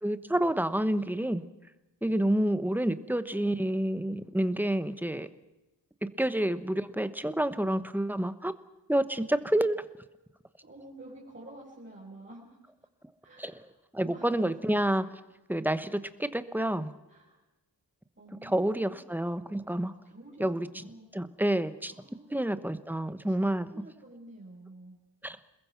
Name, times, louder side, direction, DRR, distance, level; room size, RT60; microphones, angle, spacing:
voice 1, 0.0-1.4 2.0-5.3 6.0-8.5 8.9-9.8 13.4-13.5 13.9-15.1 15.5-16.9 18.4-19.9 20.4-20.7 21.1-21.9 22.3-23.7 25.2-25.4, right 1 dB, 5° right, 13 dB, 1.0 m, -28 dB
voice 2, 10.6-12.6 13.2-13.7 14.0-14.4 17.1-17.4 18.1-19.1 19.9-21.1 21.9-22.4 23.3-23.4 23.7-25.0, right 1 dB, 30° right, -5 dB, 5.0 m, -50 dB
28.5 x 21.0 x 5.9 m, 1.0 s
wide cardioid pair, 135°, 41 cm